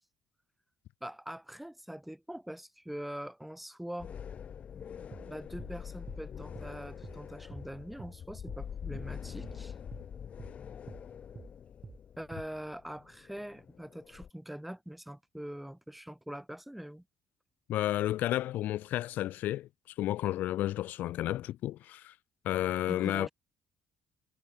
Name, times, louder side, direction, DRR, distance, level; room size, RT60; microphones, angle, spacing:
voice 1, 1.0-4.1 5.2-9.7 12.2-17.0 22.9-23.3, right 1 dB, 5° right, 7.5 m, -43 dB
sound 1, 4.0-14.3, left 8 dB, 45° left, 2.6 m, -45 dB
sound 2, 5.1-5.3 5.6-5.8 6.1-6.2 6.6-6.7 7.0-7.2 7.5-7.7 8.0-8.2 8.5-8.6 8.9-9.1 9.4-9.6 9.9-10.1 10.4-10.6 10.9-11.0 11.4-11.5 11.8-12.0 12.3-12.5, right 4 dB, 25° right, 2.6 m, -47 dB
voice 2, 17.7-22.2 22.4-23.3, left 14 dB, 70° left, 0.5 m, -32 dB
cardioid pair, 115°, 3 cm